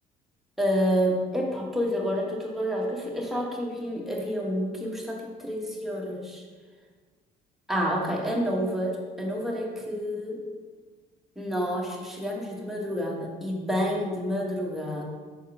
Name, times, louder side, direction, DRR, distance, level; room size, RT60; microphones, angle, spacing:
voice 1, 0.6-6.4 7.7-10.4 11.4-15.0, equal, ahead, -2 dB, 1.3 m, -29 dB
5.9 x 4.0 x 4.9 m, 1.5 s
cardioid pair, 110°, 17 cm